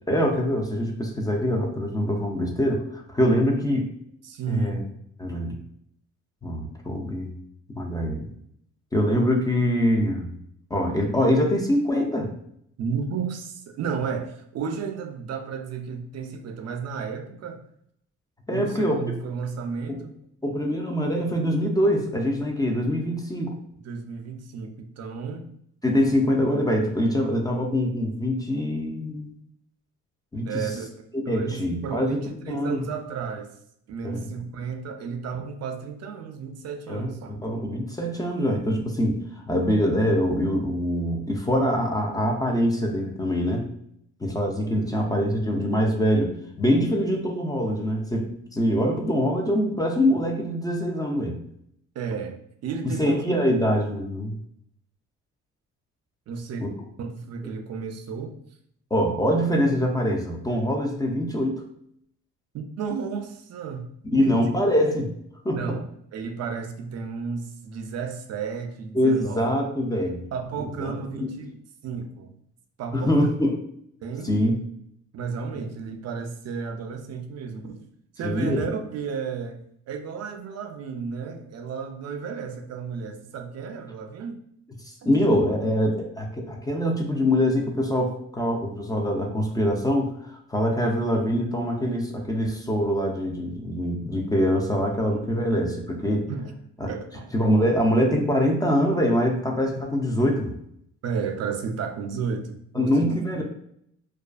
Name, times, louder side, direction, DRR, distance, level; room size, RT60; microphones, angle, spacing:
voice 1, 0.1-3.9 4.5-4.8 5.2-5.5 6.4-7.3 7.8-8.3 8.9-10.3 10.7-12.3 18.5-19.0 19.9-20.0 20.4-23.5 25.8-29.3 30.3-30.7 31.3-32.2 32.5-32.8 34.0-34.2 36.9-43.7 44.2-51.4 53.0-54.4 56.6-56.7 58.9-61.6 64.1-65.1 65.4-65.6 68.9-70.3 70.8-71.3 72.9-73.6 74.2-74.5 78.2-78.7 84.8-96.3 96.8-96.9 97.3-100.5 102.7-103.4, equal, 15° left, 1 dB, 0.4 m, -24 dB
voice 2, 4.2-4.8 12.8-17.6 18.5-20.2 23.8-25.5 30.4-30.9 31.3-33.5 33.9-37.4 52.0-53.2 56.3-56.7 57.0-58.4 62.5-64.5 65.5-65.8 66.1-69.4 70.3-72.3 72.8-73.1 74.0-74.3 75.1-77.8 78.1-84.4 96.3-96.6 96.9-97.3 101.0-103.2, right 6 dB, 60° right, 5 dB, 0.4 m, -33 dB
2.3 x 2.3 x 2.3 m, 0.70 s
cardioid pair, 90°, 30 cm